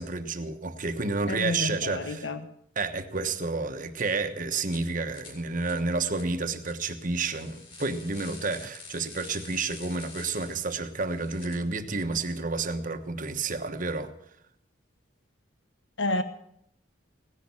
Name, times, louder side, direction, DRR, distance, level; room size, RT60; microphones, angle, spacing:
voice 1, 0.0-2.3 2.8-14.1, right 3 dB, 40° right, 8 dB, 1.3 m, -30 dB
voice 2, 1.3-2.4 16.0-16.2, left 2 dB, 65° left, 10 dB, 1.2 m, -29 dB
sound 1, 4.0-4.1 4.6-4.8 5.1-11.6, left 3 dB, 25° left, 4.6 m, -47 dB
17.5 x 10.5 x 7.2 m, 0.72 s
head